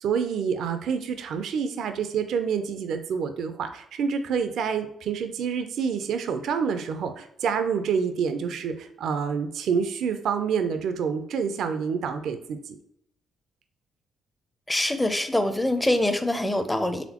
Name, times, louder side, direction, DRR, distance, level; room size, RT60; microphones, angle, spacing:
voice 1, 0.0-12.8, right 6 dB, 75° right, 8 dB, 0.4 m, -27 dB
voice 2, 14.7-17.0, left 1 dB, 10° left, 8 dB, 0.5 m, -24 dB
4.1 x 3.5 x 2.9 m, 0.73 s
cardioid pair, 90°, 0 cm